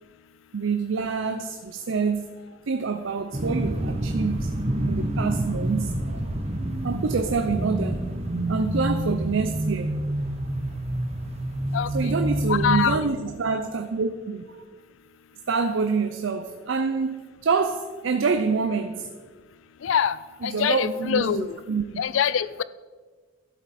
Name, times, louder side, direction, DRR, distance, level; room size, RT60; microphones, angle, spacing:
voice 1, 0.5-2.3 2.7-4.5 4.9-6.2 6.8-8.0 8.5-9.9 11.9-14.4 15.5-17.2 17.4-19.1 20.4-21.8, right 4 dB, 75° right, 8 dB, 0.5 m, -26 dB
sound 1, 3.3-13.0, right 1 dB, 35° right, 0.9 m, -27 dB
voice 2, 11.7-12.1 12.5-13.0 19.8-21.6 22.0-22.6, left 8 dB, 75° left, 16 dB, 0.4 m, -25 dB
12.5 x 7.3 x 4.2 m, 1.4 s
head